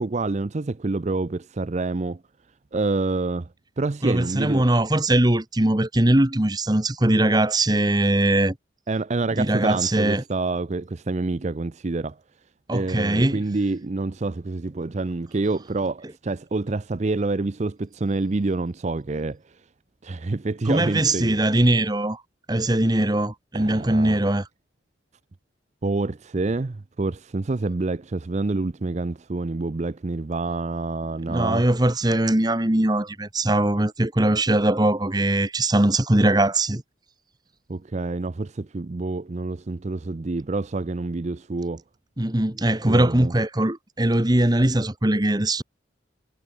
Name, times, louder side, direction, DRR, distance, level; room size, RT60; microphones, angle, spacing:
voice 1, 0.0-2.2 2.7-3.5 3.8-4.6 8.9-12.2 12.7-19.6 20.0-21.4 23.5-24.2 25.8-31.6 37.7-41.8 42.9-43.3, right 3 dB, 35° right, 0.5 m, -27 dB
voice 2, 4.0-8.5 9.4-10.2 12.7-13.4 20.6-22.2 22.5-24.5 31.3-36.8 42.2-45.6, right 1 dB, 20° right, 1.3 m, -21 dB
head